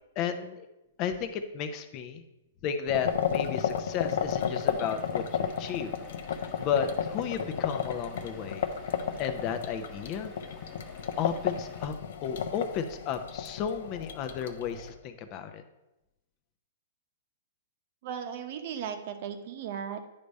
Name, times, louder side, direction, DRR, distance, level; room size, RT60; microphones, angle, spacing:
voice 1, 0.2-0.7 1.0-2.2 2.6-5.9 6.3-8.7 9.2-10.3 11.2-11.9 12.2-15.6, left 7 dB, 35° left, 8 dB, 0.7 m, -33 dB
sound 1, 2.9-14.9, left 7 dB, 70° left, 0.7 m, -33 dB
Vehicle / Engine, 3.9-11.9, left 2 dB, 10° left, 1.1 m, -52 dB
voice 2, 18.0-20.0, right 8 dB, 50° right, 7 dB, 0.9 m, -36 dB
9.8 x 3.4 x 5.3 m, 0.93 s
hypercardioid pair, 150°, 0 cm